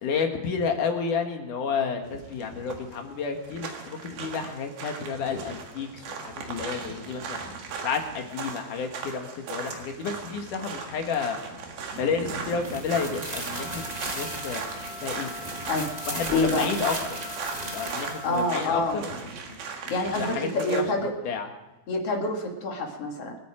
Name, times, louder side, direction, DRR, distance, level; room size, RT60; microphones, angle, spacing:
voice 1, 0.0-11.4 11.9-13.8 14.1-14.7 15.0-15.3 16.1-17.4 17.6-19.6 19.8-21.5, left 5 dB, 65° left, 4 dB, 3.0 m, -31 dB
sound 1, 2.0-20.8, right 5 dB, 90° right, 3.8 m, -38 dB
sound 2, 12.6-18.4, right 2 dB, 35° right, 0.6 m, -36 dB
sound 3, 13.5-18.5, left 2 dB, 80° left, 1.0 m, -42 dB
voice 2, 16.3-16.7 18.2-19.0 19.9-21.1 21.9-23.4, left 2 dB, 45° left, 1 dB, 2.9 m, -27 dB
27.0 x 9.3 x 5.0 m, 1.1 s
omnidirectional pair, 4.2 m